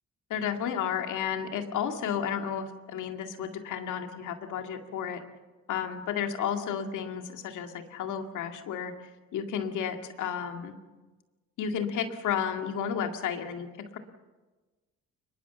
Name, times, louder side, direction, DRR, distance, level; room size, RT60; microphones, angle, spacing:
voice 1, 0.3-5.2 5.7-8.9 9.3-10.8 11.6-13.7 13.9-14.0, left 8 dB, 80° left, 6 dB, 2.3 m, -32 dB
23.5 x 21.5 x 7.1 m, 1.2 s
cardioid pair, 90°, 30 cm